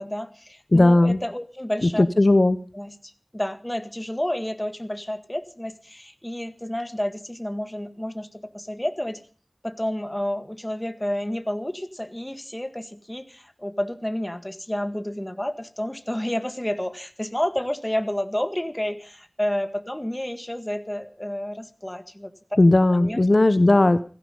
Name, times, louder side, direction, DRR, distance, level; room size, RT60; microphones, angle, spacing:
voice 1, 0.0-2.1 2.7-9.2 9.6-22.3 22.9-23.2, left 1 dB, 20° left, 9 dB, 1.8 m, -30 dB
voice 2, 0.7-1.2 2.0-2.6 22.6-24.0, left 2 dB, 60° left, 12 dB, 0.9 m, -16 dB
16.0 x 15.5 x 5.5 m, 0.41 s
wide cardioid pair, 45°, 0 cm